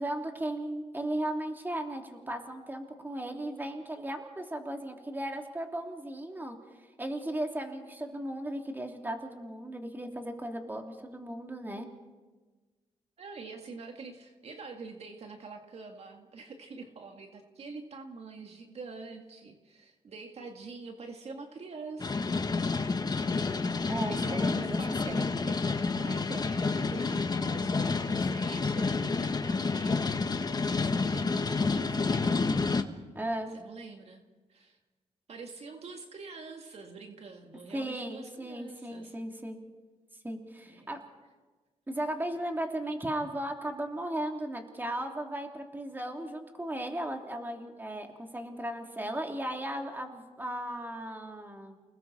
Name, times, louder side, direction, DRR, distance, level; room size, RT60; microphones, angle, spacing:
voice 1, 0.0-6.6 7.0-11.9 23.8-24.8 25.1-25.3 33.1-33.5 37.7-39.6 40.2-41.0 41.9-51.8, right 1 dB, 15° right, 2 dB, 3.1 m, -36 dB
voice 2, 13.2-22.3 23.8-25.6 26.0-32.5 33.5-34.2 34.5-34.8 35.3-39.2 40.6-41.0, right 4 dB, 60° right, 3 dB, 2.0 m, -45 dB
sound 1, 22.0-32.8, left 4 dB, 35° left, 1.3 m, -29 dB
30.0 x 20.0 x 4.3 m, 1.3 s
cardioid pair, 80°, 12 cm